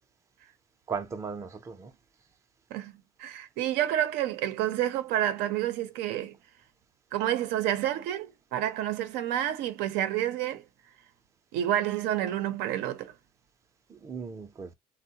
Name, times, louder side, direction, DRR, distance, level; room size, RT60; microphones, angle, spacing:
voice 1, 0.9-1.9 13.9-14.7, right 6 dB, 15° right, 0.4 m, -37 dB
voice 2, 3.2-6.4 7.1-10.6 11.5-13.1, right 12 dB, 90° right, 0.6 m, -29 dB
3.7 x 2.0 x 2.7 m
cardioid pair, 160°, 17 cm